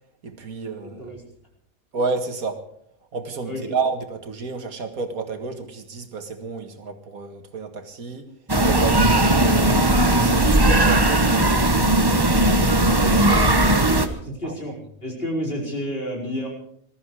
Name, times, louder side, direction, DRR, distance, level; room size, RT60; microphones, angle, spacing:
voice 1, 0.2-1.1 1.9-2.7 3.1-8.3 8.6-9.9 10.2-13.5 14.4-14.5, right 4 dB, 90° right, 2.3 m, -31 dB
voice 2, 0.8-1.2 3.4-3.8 14.2-14.7 15.0-16.5, equal, 40° left, 5.3 m, -30 dB
sound 1, 8.5-14.1, right 1 dB, 20° right, 1.1 m, -18 dB
20.5 x 14.0 x 4.8 m
omnidirectional pair, 1.5 m